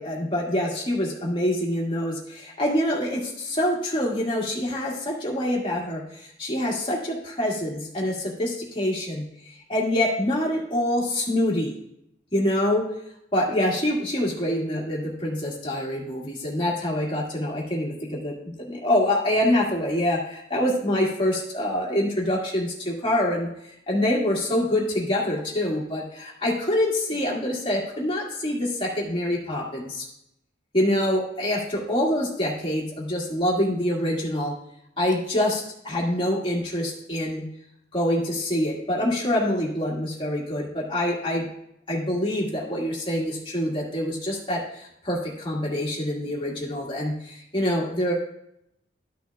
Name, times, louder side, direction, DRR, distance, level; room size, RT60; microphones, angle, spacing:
voice 1, 0.0-11.7 12.3-12.9 13.3-23.5 23.9-30.1 30.7-34.6 35.0-37.5 37.9-41.5 41.9-48.1, left 1 dB, 30° left, -4 dB, 1.9 m, -25 dB
12.5 x 6.1 x 2.3 m, 0.77 s
head